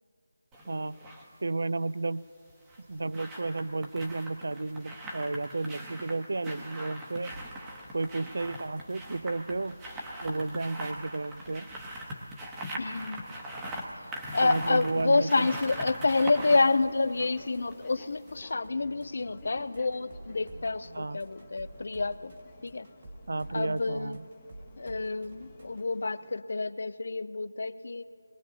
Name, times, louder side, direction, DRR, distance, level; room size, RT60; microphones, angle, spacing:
sound 1, 0.5-1.3 2.5-18.0 18.3-18.4, right 1 dB, 10° right, 1.0 m, -41 dB
voice 1, 0.7-1.0 1.4-2.3 2.9-7.4 7.9-9.8 10.2-11.7 14.4-15.5 20.9-21.2 23.3-24.2, right 3 dB, 60° right, 17 dB, 0.3 m, -32 dB
sound 2, 7.2-25.8, right 1 dB, 45° right, 1.9 m, -52 dB
voice 2, 12.8-13.3 14.3-22.3 22.6-22.9 23.5-24.2 24.8-28.0, left 3 dB, 55° left, 15 dB, 0.4 m, -28 dB
sound 3, 14.0-26.4, left 3 dB, 15° left, 0.8 m, -55 dB
22.0 x 17.0 x 2.8 m, 2.5 s
figure-of-eight pair, 170°, 0 cm